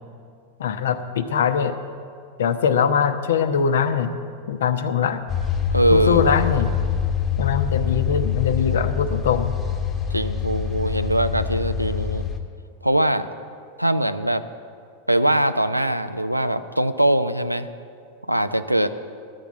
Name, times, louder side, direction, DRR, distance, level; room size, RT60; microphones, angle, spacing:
voice 1, 0.6-1.8 2.4-4.2 4.5-5.2 5.9-6.7 7.4-9.6, left 7 dB, 60° left, 10 dB, 0.6 m, -22 dB
sound 1, 5.3-12.4, left 8 dB, 20° left, 1.2 m, -25 dB
voice 2, 5.7-6.4 10.1-12.2 12.8-13.3 13.8-14.4 15.1-17.7 18.3-18.9, right 1 dB, 90° right, 11 dB, 0.4 m, -21 dB
12.0 x 7.0 x 7.4 m, 2.3 s
figure-of-eight pair, 90°, 0 cm